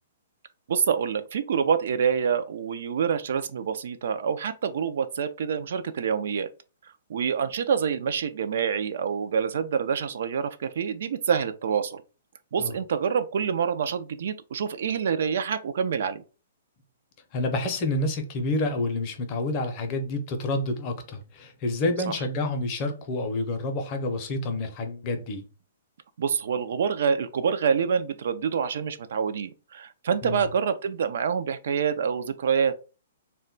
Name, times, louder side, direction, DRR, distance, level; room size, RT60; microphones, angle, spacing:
voice 1, 0.7-6.5 7.1-12.0 12.5-16.2 22.1-22.2 26.2-32.8, right 7 dB, 65° right, 0.3 m, -26 dB
voice 2, 17.3-25.4 30.2-30.5, left 2 dB, 30° left, 0.5 m, -28 dB
2.1 x 2.1 x 3.7 m
hypercardioid pair, 150°, 0 cm